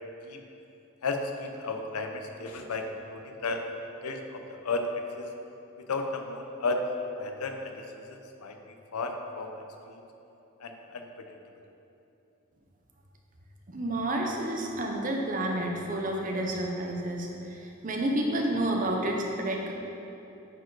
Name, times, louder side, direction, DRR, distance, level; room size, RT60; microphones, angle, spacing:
voice 1, 1.0-3.6 4.0-5.3 5.8-6.9 7.2-8.6 8.9-9.5 9.9-10.0 10.6-11.3, left 3 dB, 85° left, 4 dB, 0.7 m, -34 dB
voice 2, 13.7-19.7, right 1 dB, 35° right, 1 dB, 0.7 m, -30 dB
9.1 x 4.5 x 4.0 m, 2.9 s
head